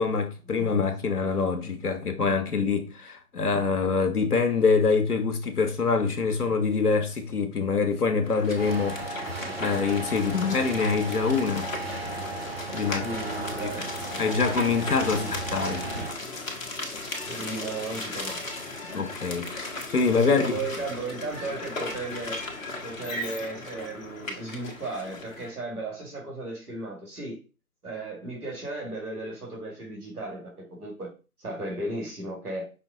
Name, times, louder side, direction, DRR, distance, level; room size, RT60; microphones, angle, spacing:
voice 1, 0.0-9.0 9.6-11.7 12.7-13.1 13.6-13.9 14.2-15.9 18.9-20.4, left 4 dB, 80° left, 1.0 m, -25 dB
sound 1, 8.2-25.5, left 2 dB, 60° left, 1.2 m, -37 dB
sound 2, 8.6-16.1, right 2 dB, 45° right, 0.5 m, -35 dB
voice 2, 13.0-13.8 15.1-15.3 17.3-18.4 20.2-22.4 22.8-27.4 27.8-31.1 31.4-32.7, right 2 dB, 80° right, 2.3 m, -35 dB
5.5 x 2.3 x 3.6 m
figure-of-eight pair, 165°, 45 cm